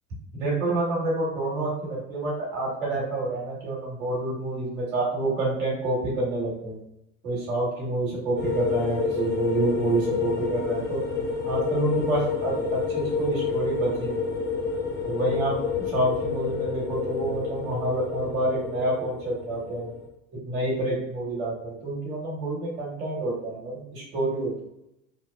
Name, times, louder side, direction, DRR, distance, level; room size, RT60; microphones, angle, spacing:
voice 1, 0.4-6.8 7.2-11.0 11.5-14.4 15.0-15.6 15.9-19.9 20.4-24.6, right 2 dB, 70° right, -4 dB, 1.4 m, -28 dB
sound 1, 8.4-20.0, left 5 dB, 20° left, 1.0 m, -29 dB
2.9 x 2.2 x 2.4 m, 0.84 s
hypercardioid pair, 75°, 41 cm